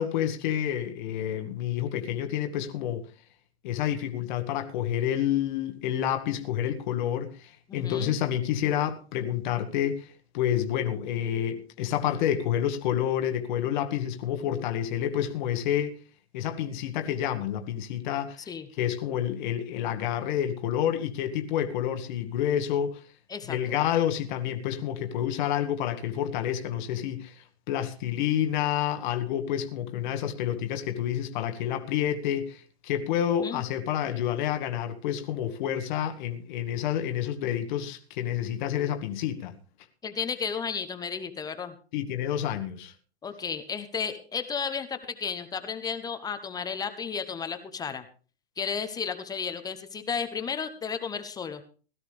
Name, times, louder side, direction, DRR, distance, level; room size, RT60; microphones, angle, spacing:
voice 1, 0.0-3.0 3.6-15.9 16.3-23.0 23.5-39.6 41.9-42.9, left 10 dB, 45° left, 1.5 m, -29 dB
voice 2, 7.7-8.1 18.5-18.7 23.3-23.6 33.3-33.6 40.0-41.7 43.2-48.0 48.6-51.6, left 6 dB, 10° left, 0.8 m, -33 dB
17.0 x 12.5 x 3.4 m
hypercardioid pair, 125°, 32 cm